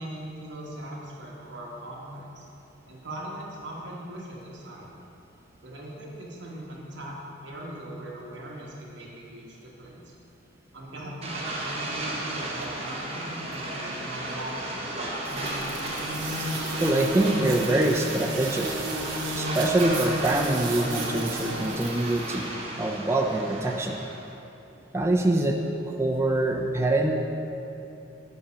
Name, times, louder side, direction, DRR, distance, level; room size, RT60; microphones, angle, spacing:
voice 1, 0.0-2.5 2.9-5.0 5.6-7.2 7.4-10.0 10.7-15.0, right 1 dB, 65° right, -3 dB, 1.2 m, -40 dB
sound 1, 11.2-24.3, right 1 dB, 30° right, 0.9 m, -35 dB
sound 2, 15.2-22.4, right 1 dB, 85° right, 0.9 m, -33 dB
voice 2, 16.4-18.8 19.3-22.5 22.8-24.0 24.9-25.6 25.9-27.1, right 2 dB, 15° right, 1 dB, 0.3 m, -25 dB
5.4 x 5.1 x 5.7 m, 2.9 s
head